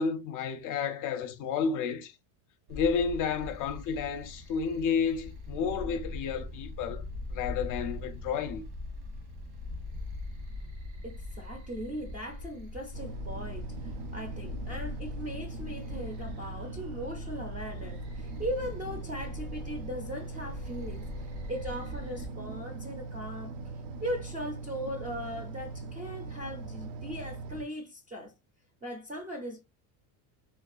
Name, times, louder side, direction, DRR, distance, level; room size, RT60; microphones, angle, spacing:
voice 1, 0.0-2.2 2.7-7.0 7.3-8.6, left 6 dB, 45° left, 0.5 m, -31 dB
sound 1, 2.7-22.3, left 2 dB, 80° right, 1.3 m, -41 dB
voice 2, 11.0-21.1 21.5-23.6 24.0-28.3 28.8-29.6, equal, 20° right, 0.4 m, -39 dB
sound 2, 12.9-27.6, right 3 dB, 65° right, 0.6 m, -41 dB
3.4 x 2.3 x 2.3 m
cardioid pair, 150°, 44 cm